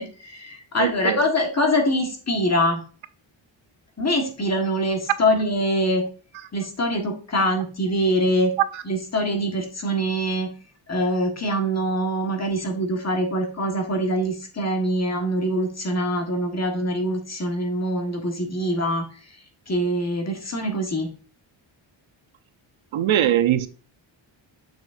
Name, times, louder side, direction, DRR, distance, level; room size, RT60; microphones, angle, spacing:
voice 1, 0.0-2.8 4.0-6.0 6.5-8.5 8.8-10.5 10.9-19.0 19.7-21.1, equal, 35° left, 1.4 m, -24 dB
voice 2, 0.8-1.2 8.7-8.8 22.9-23.7, right 11 dB, 75° right, 0.7 m, -21 dB
6.9 x 6.1 x 2.5 m
wide cardioid pair, 115°, 47 cm